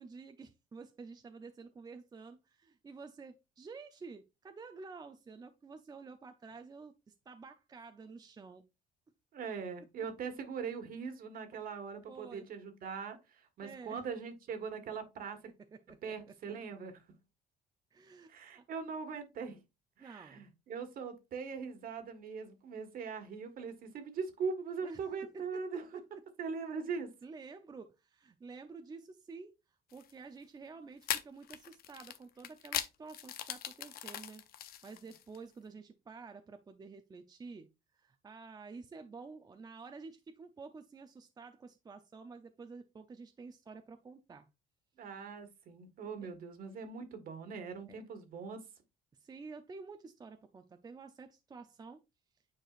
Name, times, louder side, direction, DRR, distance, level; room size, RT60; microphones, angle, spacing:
voice 1, 0.0-8.6 10.0-10.1 12.1-12.5 13.6-14.0 15.7-16.3 17.9-18.6 20.0-20.5 24.8-25.0 25.3-25.6 25.9-26.0 27.2-29.5 29.9-34.4 34.8-37.7 37.9-44.5 46.2-46.3 47.9-48.0 49.2-52.0, right 4 dB, 25° right, 0.6 m, -50 dB
voice 2, 9.3-15.4 16.0-17.0 18.3-19.6 20.0-25.9 26.4-27.1 45.0-48.6, right 5 dB, 60° right, 1.7 m, -41 dB
sound 1, 29.9-30.1 31.0-35.4, left 11 dB, 65° left, 0.7 m, -40 dB
9.0 x 4.7 x 2.5 m
cardioid pair, 110°, 17 cm